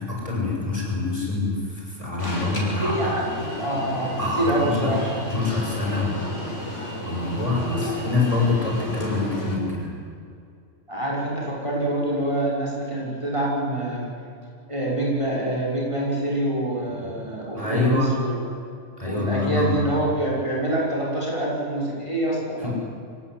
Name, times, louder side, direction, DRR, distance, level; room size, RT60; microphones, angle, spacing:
voice 1, 0.0-3.1 4.2-4.9 5.3-6.3 6.7-9.9 16.9-17.1 17.5-18.2 19.0-19.9 22.6-22.7, left 3 dB, 25° left, -2 dB, 6.3 m, -26 dB
Alarm, 2.2-9.5, left 1 dB, 65° left, 5.5 m, -32 dB
voice 2, 2.8-3.2 3.6-5.1 10.9-14.1 14.7-18.4 19.0-22.7, right 1 dB, 25° right, -3 dB, 6.0 m, -26 dB
24.5 x 17.5 x 9.6 m, 2.4 s
omnidirectional pair, 1.3 m